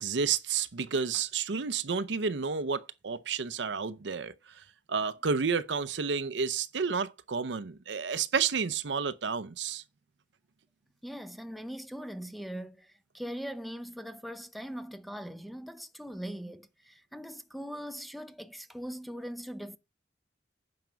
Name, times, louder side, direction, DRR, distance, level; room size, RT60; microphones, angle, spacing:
voice 1, 0.0-4.3 4.9-9.8, right 5 dB, 75° right, 0.6 m, -30 dB
voice 2, 11.0-19.8, equal, ahead, 0.5 m, -41 dB
9.3 x 5.9 x 5.1 m
head